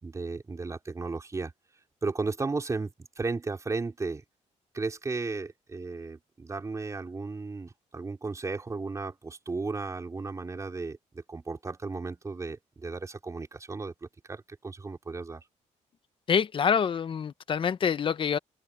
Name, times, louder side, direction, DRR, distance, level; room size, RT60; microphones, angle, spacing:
voice 1, 0.0-1.5 2.0-4.2 4.7-15.4, right 3 dB, 25° right, 4.7 m, -35 dB
voice 2, 16.3-18.4, left 7 dB, 45° left, 0.9 m, -26 dB
open air
cardioid pair, 115°, 13 cm